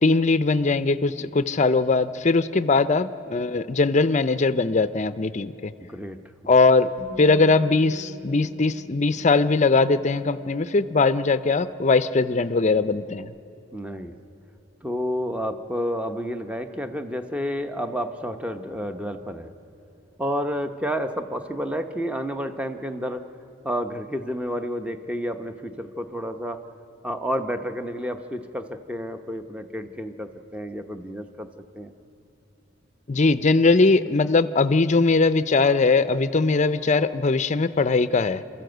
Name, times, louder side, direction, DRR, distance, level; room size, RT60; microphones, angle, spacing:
voice 1, 0.0-5.7 6.5-6.9 7.2-13.3 33.1-38.4, left 3 dB, 35° left, 13 dB, 0.5 m, -20 dB
voice 2, 5.8-6.2 13.7-14.1 14.8-19.5 20.2-23.2 23.6-26.6 27.0-31.5 31.7-31.9, equal, 5° right, 7 dB, 0.8 m, -30 dB
Bass guitar, 7.0-13.2, left 1 dB, 65° right, 5.3 m, -46 dB
28.0 x 14.0 x 8.0 m, 2.9 s
head